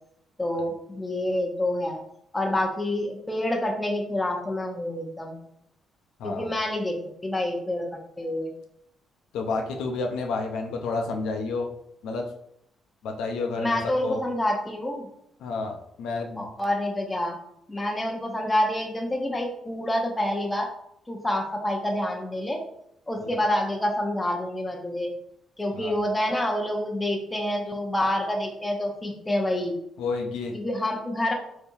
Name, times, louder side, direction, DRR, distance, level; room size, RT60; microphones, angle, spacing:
voice 1, 0.4-2.0 2.3-5.4 6.2-7.0 7.2-7.9 8.2-8.5 13.6-15.1 16.4-17.4 17.7-20.7 21.1-22.6 23.1-25.1 25.6-29.8 30.5-31.3, left 1 dB, 15° left, 1 dB, 0.7 m, -27 dB
voice 2, 9.3-11.7 12.0-12.2 13.0-14.2 15.4-16.5 23.2-23.3 25.7-25.9 30.0-30.5, left 3 dB, 85° left, 2 dB, 0.5 m, -30 dB
3.3 x 2.8 x 2.6 m, 0.74 s
cardioid pair, 90°, 0 cm